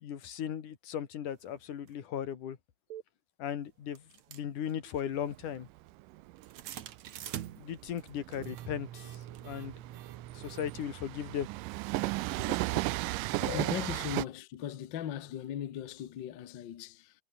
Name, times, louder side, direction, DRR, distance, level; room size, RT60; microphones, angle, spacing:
voice 1, 0.0-2.6 3.4-4.0 4.3-5.7 7.6-9.8 10.3-11.5 12.4-13.0 13.4-13.6, left 9 dB, 65° left, 3.5 m, -37 dB
sound 1, 1.9-2.0 2.9-3.0 4.0-10.9, right 11 dB, 60° right, 2.3 m, -45 dB
Train, 5.2-14.3, right 20 dB, 80° right, 2.1 m, -35 dB
voice 2, 13.5-17.1, left 10 dB, 80° left, 1.0 m, -38 dB
omnidirectional pair, 4.0 m